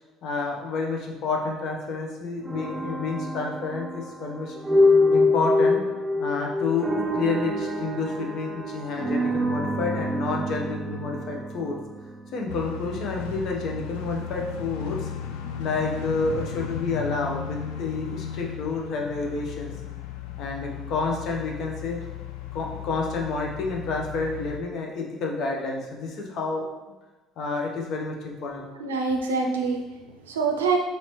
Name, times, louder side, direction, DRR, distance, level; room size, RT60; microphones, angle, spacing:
voice 1, 0.2-4.6 5.1-5.8 6.2-6.9 7.1-11.8 12.3-15.1 15.6-19.7 20.4-22.0 22.5-26.7 27.4-28.6, left 4 dB, 55° left, 1 dB, 0.7 m, -29 dB
sound 1, 2.4-12.5, left 2 dB, 15° right, 0.6 m, -25 dB
sound 2, 12.5-24.6, left 8 dB, 75° left, 0.3 m, -35 dB
voice 2, 28.7-30.8, right 4 dB, 85° right, 2 dB, 0.4 m, -26 dB
4.0 x 3.1 x 3.1 m, 1.2 s
hypercardioid pair, 55°, 0 cm